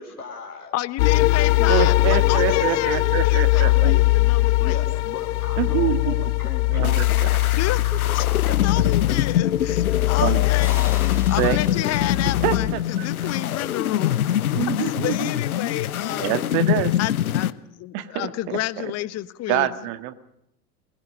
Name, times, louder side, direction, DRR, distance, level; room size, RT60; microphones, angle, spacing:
voice 1, 0.0-0.7 1.3-2.6 3.5-4.0 4.6-8.0 8.4-8.5 10.0-10.1 11.4-11.8, left 4 dB, 85° left, 1 dB, 3.2 m, -37 dB
voice 2, 0.7-4.9 7.5-7.8 8.1-14.2 14.8-16.4 17.0-19.7, left 15 dB, 35° left, 16 dB, 1.3 m, -30 dB
sound 1, 1.0-12.7, left 20 dB, 50° left, 0.9 m, -21 dB
voice 3, 1.7-3.9 5.6-6.2 6.7-7.3 10.2-10.4 11.4-11.6 12.4-12.8 13.2-13.3 14.6-15.1 16.2-16.9 17.9-18.9 19.5-20.1, right 12 dB, 45° right, 11 dB, 1.9 m, -25 dB
sound 2, 6.8-17.5, left 11 dB, 70° left, 1.1 m, -25 dB
sound 3, 10.6-13.9, right 1 dB, 5° right, 4.7 m, -45 dB
23.0 x 21.0 x 6.7 m, 0.82 s
figure-of-eight pair, 85°, 45 cm